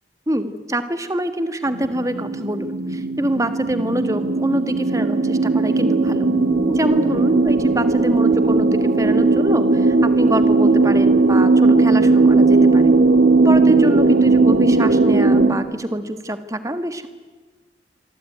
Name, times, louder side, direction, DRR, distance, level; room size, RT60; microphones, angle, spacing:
voice 1, 0.3-6.3 6.7-13.0 13.4-17.1, right 1 dB, 20° right, 9 dB, 1.5 m, -25 dB
sound 1, 1.7-15.5, right 3 dB, 60° right, 1.9 m, -17 dB
26.0 x 24.5 x 9.3 m, 1.3 s
head